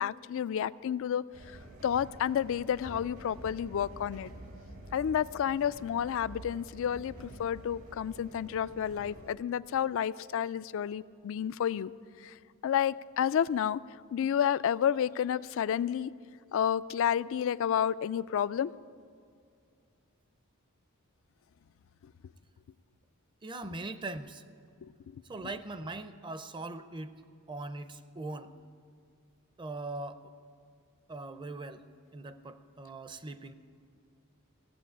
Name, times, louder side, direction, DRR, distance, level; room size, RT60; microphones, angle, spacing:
voice 1, 0.0-4.3 4.9-11.9 12.2-12.4 12.6-13.8 14.1-16.1 16.5-18.7 24.8-25.5, left 9 dB, 65° left, 17 dB, 0.3 m, -30 dB
sound 1, 1.3-9.4, right 1 dB, 80° right, 2.0 m, -48 dB
voice 2, 23.4-24.4 25.3-27.2 27.5-28.5 29.6-30.2 31.1-31.8 32.1-33.5, right 2 dB, 25° right, 11 dB, 0.6 m, -40 dB
16.5 x 7.5 x 8.4 m, 2.3 s
head